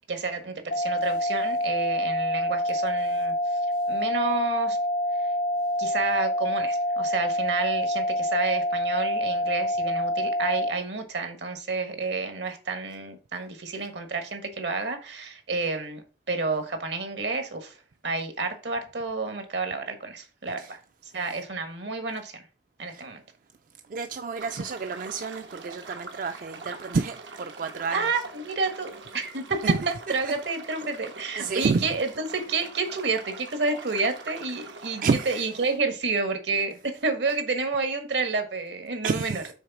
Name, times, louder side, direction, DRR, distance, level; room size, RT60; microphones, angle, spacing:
voice 1, 0.1-3.3 3.9-4.8 5.8-17.7 18.0-20.8 21.1-22.4 22.8-23.2 27.9-29.6 30.1-39.4, right 4 dB, 75° right, 1.5 m, -30 dB
sound 1, 0.7-10.7, equal, 50° left, 0.5 m, -26 dB
voice 2, 23.9-28.1 29.6-29.9 30.2-30.3 31.4-31.8 35.0-35.4 39.0-39.5, right 4 dB, 50° right, 0.4 m, -29 dB
sound 2, 24.3-35.4, right 4 dB, 90° right, 1.2 m, -43 dB
6.3 x 4.1 x 5.9 m
head